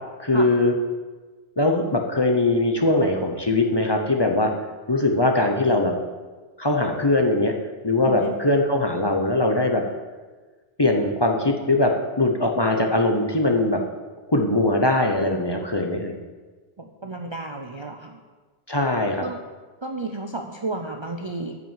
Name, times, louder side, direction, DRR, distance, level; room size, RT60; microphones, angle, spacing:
voice 1, 0.2-0.7 1.6-4.5 4.9-5.9 6.6-7.5 7.8-9.8 10.8-13.8 14.3-16.1 18.7-19.2, left 2 dB, 25° left, 2 dB, 0.8 m, -21 dB
voice 2, 16.8-18.2 19.2-19.4 19.8-21.6, right 2 dB, 35° right, 3 dB, 0.5 m, -32 dB
9.3 x 5.7 x 7.5 m, 1.4 s
omnidirectional pair, 1.2 m